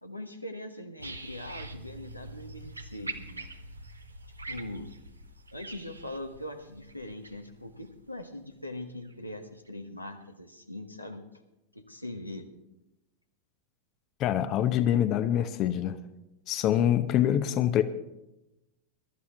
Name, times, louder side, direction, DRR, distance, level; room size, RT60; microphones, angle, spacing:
voice 1, 0.0-3.5 4.4-4.9 5.5-11.2 11.7-12.5, left 1 dB, 90° left, 5 dB, 1.3 m, -41 dB
sound 1, 1.0-9.1 9.7-9.8, right 2 dB, 80° right, 1.1 m, -44 dB
voice 2, 14.2-16.0 16.5-17.8, left 11 dB, 35° left, 11 dB, 0.8 m, -25 dB
22.0 x 12.5 x 3.6 m, 0.92 s
figure-of-eight pair, 90°, 0 cm